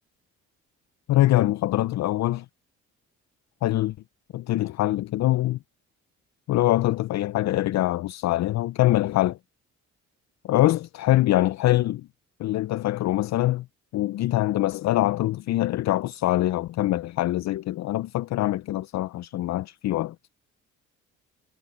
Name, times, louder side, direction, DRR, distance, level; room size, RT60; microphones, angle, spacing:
voice 1, 1.1-2.5 3.6-3.9 4.3-5.6 6.5-9.4 10.4-12.1 12.4-13.7 13.9-20.2, left 15 dB, 65° left, 0.5 m, -24 dB
cardioid pair, 90°, 30 cm